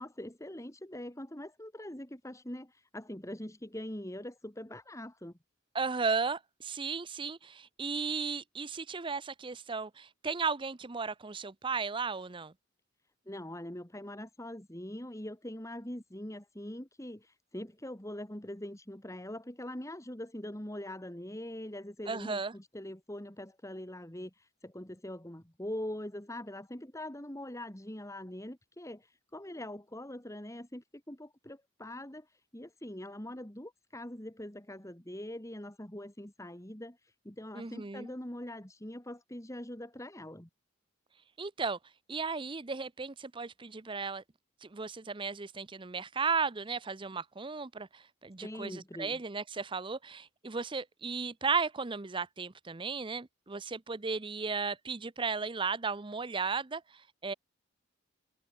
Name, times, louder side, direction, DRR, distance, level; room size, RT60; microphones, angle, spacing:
voice 1, 0.0-5.3 13.3-40.5 48.4-49.2, left 1 dB, 15° left, 2.1 m, -43 dB
voice 2, 5.7-12.5 22.1-22.5 37.5-38.1 41.4-41.8 42.1-44.2 44.6-57.3, right 4 dB, 25° right, 0.7 m, -35 dB
open air
head